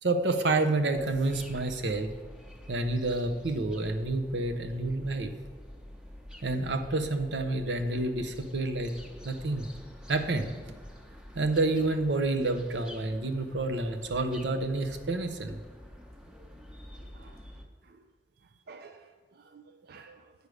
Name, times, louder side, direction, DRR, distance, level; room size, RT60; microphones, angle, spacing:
voice 1, 0.0-2.1 2.7-5.3 6.4-8.9 9.2-9.7 10.1-10.5 11.3-15.6, right 2 dB, 85° right, 6 dB, 0.8 m, -29 dB
sound 1, 0.9-17.6, equal, 5° right, 0.8 m, -48 dB
voice 2, 17.0-17.4 17.8-18.0 18.7-20.3, right 4 dB, 60° right, 7 dB, 0.4 m, -52 dB
8.2 x 4.9 x 6.4 m, 1.5 s
head